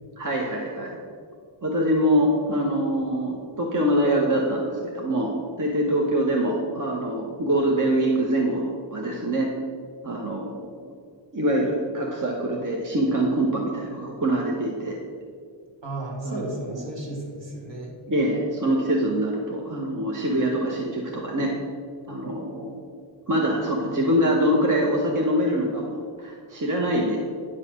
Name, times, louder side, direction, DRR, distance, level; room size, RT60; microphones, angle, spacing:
voice 1, 0.2-1.0 1.6-5.3 5.6-9.5 10.0-10.7 11.3-15.0 16.2-16.4 16.6-16.8 18.1-21.5 22.1-22.8 23.3-27.2, right 1 dB, 40° right, -1 dB, 1.1 m, -24 dB
voice 2, 15.8-18.0, right 1 dB, 60° right, -1 dB, 2.1 m, -33 dB
9.8 x 5.7 x 6.5 m, 2.1 s
wide cardioid pair, 175°, 48 cm